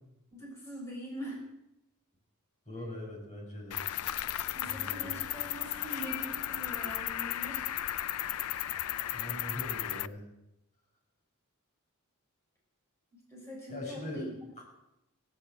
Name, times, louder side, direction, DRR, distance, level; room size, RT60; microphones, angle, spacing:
voice 1, 0.3-1.4 4.5-7.7 13.3-14.3, right 1 dB, 15° left, -4 dB, 6.0 m, -43 dB
voice 2, 2.7-3.8 4.6-5.1 9.1-10.2 13.7-14.3, left 1 dB, 35° left, -2 dB, 6.2 m, -41 dB
Cricket, 3.7-10.1, left 13 dB, 80° left, 0.5 m, -35 dB
17.0 x 8.9 x 9.2 m, 0.88 s
head